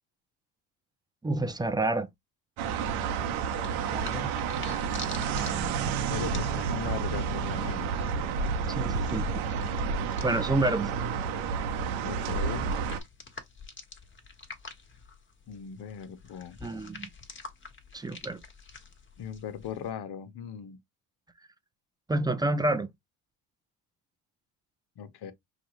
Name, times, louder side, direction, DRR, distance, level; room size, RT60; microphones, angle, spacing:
voice 1, 1.2-2.1 3.9-4.5 8.8-9.6 10.2-10.9 16.6-17.1 17.9-18.4 22.1-22.9, right 2 dB, 10° right, 0.6 m, -29 dB
sound 1, 2.6-13.0, right 6 dB, 70° right, 1.1 m, -30 dB
sound 2, 2.8-19.9, left 4 dB, 25° left, 1.4 m, -48 dB
voice 2, 4.1-4.8 6.1-8.1 12.0-12.7 15.5-16.6 19.2-20.8 25.0-25.3, left 8 dB, 50° left, 1.0 m, -39 dB
5.5 x 2.4 x 3.0 m
supercardioid pair, 85°, 49 cm